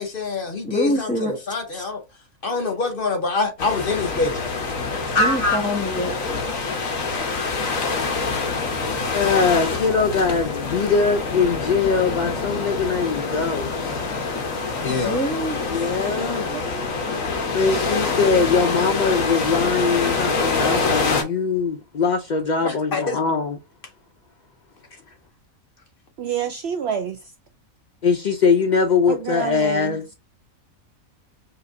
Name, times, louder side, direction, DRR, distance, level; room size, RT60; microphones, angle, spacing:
voice 1, 0.0-2.0 2.4-4.4 5.1-5.7 14.8-15.2 22.6-23.2, left 3 dB, 50° left, 0.8 m, -24 dB
voice 2, 0.6-1.4 1.7-1.8 5.2-6.4 14.9-15.6, equal, 5° left, 0.9 m, -25 dB
sound 1, 3.6-21.2, left 4 dB, 70° left, 1.4 m, -25 dB
voice 3, 9.1-13.8 15.7-16.5 17.5-23.6 28.0-30.0, left 5 dB, 85° left, 0.4 m, -21 dB
voice 4, 16.1-17.3 26.2-27.3 29.1-30.0, right 7 dB, 65° right, 0.6 m, -29 dB
5.4 x 2.5 x 2.6 m
omnidirectional pair, 1.5 m